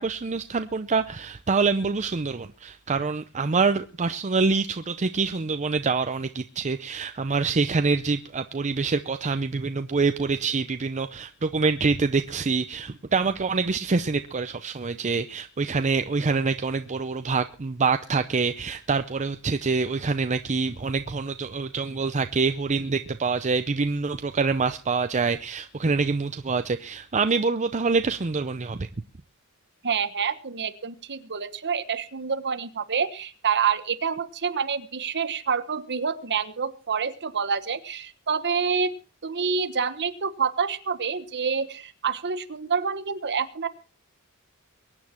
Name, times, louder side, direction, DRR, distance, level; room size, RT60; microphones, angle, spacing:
voice 1, 0.0-28.9, right 4 dB, 30° right, 9 dB, 0.6 m, -26 dB
voice 2, 29.8-38.9 39.2-43.7, right 6 dB, 50° right, 11 dB, 1.2 m, -27 dB
23.0 x 9.6 x 4.4 m, 0.35 s
head